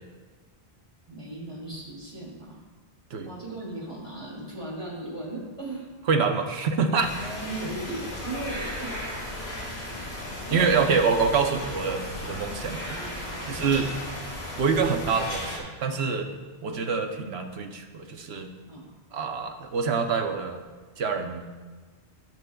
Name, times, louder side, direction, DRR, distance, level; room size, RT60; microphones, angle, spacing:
voice 1, 1.1-2.6 3.2-5.9 7.2-9.0 9.9-10.1 10.5-10.9 13.0-13.9 16.3-16.4 18.6-18.9, right 2 dB, 30° right, -5 dB, 2.5 m, -37 dB
voice 2, 6.1-7.1 10.5-12.8 13.5-13.9 14.6-16.3 16.6-18.5 19.1-20.6 21.0-21.5, right 5 dB, 90° right, 5 dB, 1.0 m, -26 dB
sound 1, 7.0-15.6, left 1 dB, 55° left, 2.1 m, -35 dB
14.0 x 6.2 x 2.3 m, 1.4 s
omnidirectional pair, 1.0 m